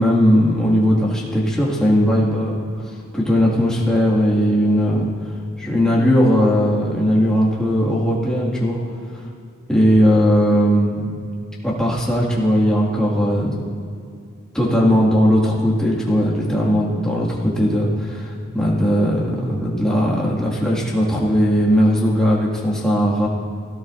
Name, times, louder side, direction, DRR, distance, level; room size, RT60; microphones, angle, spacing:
voice 1, 0.0-2.6 2.9-5.1 5.6-8.8 9.7-11.1 11.6-13.5 14.5-23.3, equal, 5° left, -6 dB, 1.9 m, -18 dB
17.0 x 14.0 x 2.6 m, 2.5 s
head